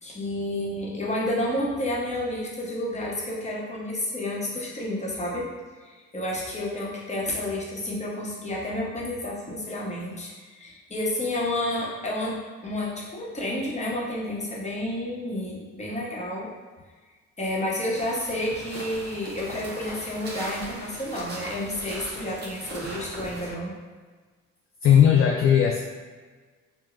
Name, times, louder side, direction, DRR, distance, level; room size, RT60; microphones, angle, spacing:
voice 1, 0.0-5.5 5.8-12.4 12.6-16.5 17.4-23.7, left 1 dB, 25° left, -4 dB, 0.9 m, -30 dB
sound 1, 17.9-23.5, right 1 dB, 35° right, 1.0 m, -39 dB
voice 2, 24.8-25.8, left 9 dB, 50° left, 0 dB, 0.4 m, -17 dB
4.8 x 2.2 x 2.4 m, 1.4 s
cardioid pair, 90°, 30 cm